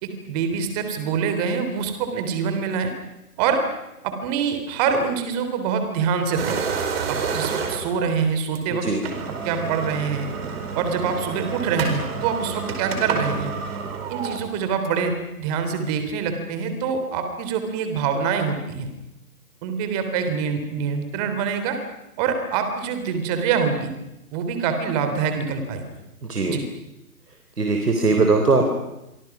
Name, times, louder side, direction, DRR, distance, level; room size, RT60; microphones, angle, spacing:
voice 1, 0.0-2.9 3.4-3.6 4.0-6.6 7.1-8.9 9.4-10.3 10.7-13.5 14.1-18.9 19.6-21.8 22.2-23.9 24.3-25.8 26.5-26.6, right 6 dB, 25° right, 7 dB, 3.5 m, -25 dB
sound 1, 6.4-8.0 8.6-8.7 9.0-15.1, right 5 dB, 40° right, 4.8 m, -29 dB
voice 2, 27.6-28.7, right 3 dB, 90° right, 4 dB, 3.8 m, -20 dB
29.0 x 24.5 x 6.0 m, 0.92 s
hypercardioid pair, 150°, 46 cm